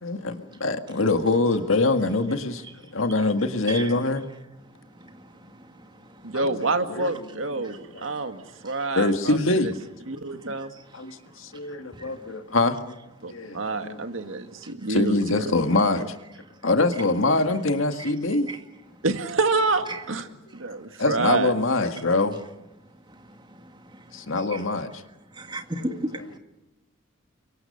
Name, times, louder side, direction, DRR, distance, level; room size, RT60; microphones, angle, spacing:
voice 1, 0.0-2.6 2.9-4.2 6.3-6.5 6.9-7.1 7.6-7.7 7.9-8.0 9.0-9.7 10.9-13.0 13.3-14.0 14.9-16.2 16.6-18.5 21.0-22.4 24.1-24.9 25.8-26.0, left 2 dB, 80° left, 1.8 m, -24 dB
voice 2, 6.2-9.7 10.1-10.7 13.2-15.5 19.0-21.5, right 3 dB, 75° right, 2.0 m, -28 dB
voice 3, 25.4-26.4, right 1 dB, 25° right, 2.0 m, -34 dB
29.0 x 24.0 x 6.7 m
head